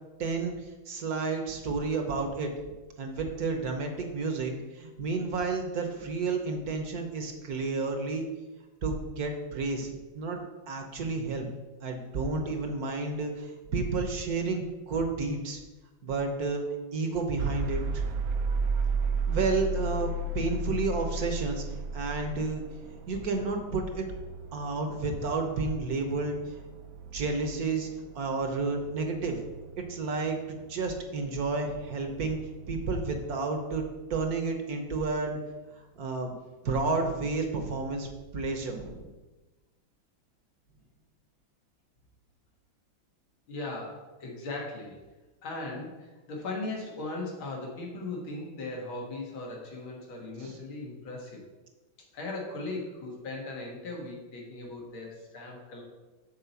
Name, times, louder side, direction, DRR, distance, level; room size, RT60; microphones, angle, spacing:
voice 1, 0.2-0.6 0.9-2.5 3.0-8.3 8.8-11.5 11.8-15.6 16.0-16.6 16.9-18.0 19.3-21.6 21.9-22.6 23.1-24.1 24.5-26.3 27.1-27.9 28.1-29.4 29.8-32.4 32.7-33.8 34.1-35.4 36.0-36.3 36.6-39.1 50.4-50.6, right 3 dB, 55° right, 4 dB, 1.3 m, -31 dB
sound 1, 17.4-33.3, right 3 dB, 75° right, 0.8 m, -35 dB
voice 2, 43.5-45.0 45.4-51.4 52.1-55.8, left 2 dB, 90° left, -1 dB, 2.4 m, -38 dB
7.4 x 4.3 x 6.8 m, 1.2 s
omnidirectional pair, 2.1 m